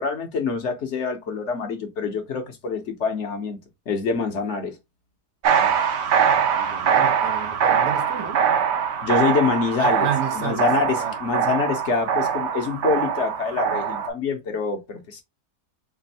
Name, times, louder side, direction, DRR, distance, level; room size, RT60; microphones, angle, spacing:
voice 1, 0.0-3.6 3.9-4.8 9.0-10.1 10.3-15.2, left 5 dB, 55° left, 1.1 m, -25 dB
sound 1, 5.4-14.1, right 7 dB, 60° right, 0.8 m, -22 dB
voice 2, 6.1-8.4 9.8-11.2, right 7 dB, 85° right, 1.4 m, -32 dB
3.4 x 2.5 x 4.1 m
omnidirectional pair, 1.6 m